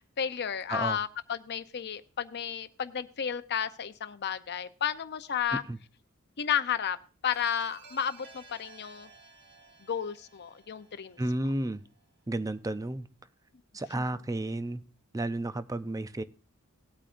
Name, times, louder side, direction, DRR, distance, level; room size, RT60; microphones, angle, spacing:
voice 1, 0.2-5.6 6.4-7.0 7.2-9.1 9.9-11.2, left 8 dB, 50° left, 12 dB, 0.6 m, -32 dB
sound 1, 7.3-12.1, right 4 dB, 55° right, 1.6 m, -55 dB
voice 2, 11.2-11.8 12.3-13.1 13.7-14.8 15.1-16.2, right 1 dB, 15° right, 12 dB, 0.4 m, -32 dB
18.0 x 8.7 x 2.5 m, 0.37 s
head